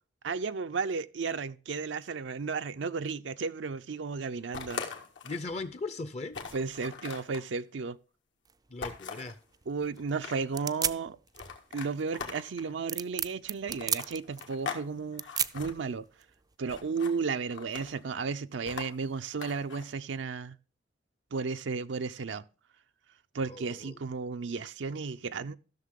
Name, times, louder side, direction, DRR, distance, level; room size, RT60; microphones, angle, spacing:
voice 1, 0.2-4.8 6.5-8.0 9.7-11.2 11.7-15.2 15.5-16.0 16.6-20.6 21.3-22.4 23.3-25.6, right 5 dB, 75° right, 0.5 m, -34 dB
sound 1, 4.5-5.5 5.9-6.0 6.3-7.5 8.8-9.4 10.0-10.6 11.3-12.7 13.7-14.9 15.1-15.7 16.7-17.2 17.5-18.0 18.7-19.8, left 5 dB, 85° left, 2.0 m, -41 dB
voice 2, 5.2-6.4 8.7-9.4 23.4-24.0, left 3 dB, 35° left, 0.6 m, -38 dB
sound 2, 8.4-16.5, right 8 dB, 20° right, 0.4 m, -37 dB
14.5 x 6.6 x 3.7 m
head